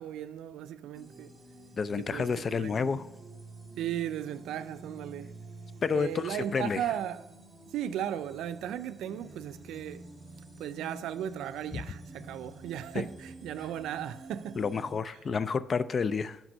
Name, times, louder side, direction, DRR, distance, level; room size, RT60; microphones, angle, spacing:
voice 1, 0.0-1.3 2.0-2.9 3.8-5.3 5.9-7.2 7.7-10.1 10.6-14.6, right 10 dB, 85° right, 0.3 m, -36 dB
sound 1, 0.9-14.9, right 2 dB, 15° right, 1.6 m, -49 dB
voice 2, 1.8-3.1 5.8-6.8 11.7-11.8 12.9-13.1 14.6-16.4, left 5 dB, 45° left, 0.3 m, -30 dB
6.0 x 5.1 x 5.4 m
cardioid pair, 90°, 0 cm